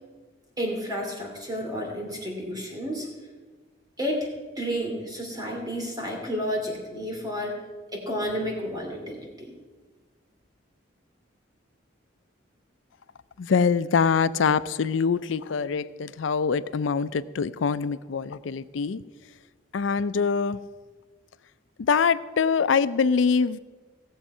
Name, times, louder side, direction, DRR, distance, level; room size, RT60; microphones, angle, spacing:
voice 1, 0.6-3.1 4.0-4.3 4.6-7.6 7.9-9.5, equal, 20° right, 1 dB, 2.6 m, -31 dB
voice 2, 13.4-19.0 19.7-20.6 21.8-23.6, left 5 dB, 85° left, 16 dB, 0.4 m, -24 dB
17.5 x 7.3 x 5.5 m, 1.3 s
head